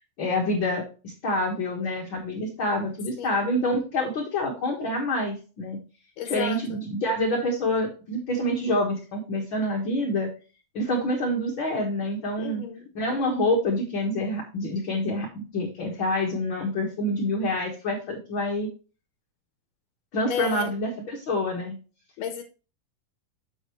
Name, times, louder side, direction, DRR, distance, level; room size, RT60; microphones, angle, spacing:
voice 1, 0.2-5.8 6.2-10.3 10.7-12.6 12.9-18.7 20.1-21.8, left 1 dB, 45° left, -2 dB, 1.8 m, -27 dB
voice 2, 3.2-3.6 6.2-6.8 12.4-12.9 20.3-20.7 22.2-22.4, left 7 dB, 75° left, 5 dB, 2.4 m, -33 dB
7.7 x 7.1 x 3.2 m, 0.34 s
omnidirectional pair, 4.0 m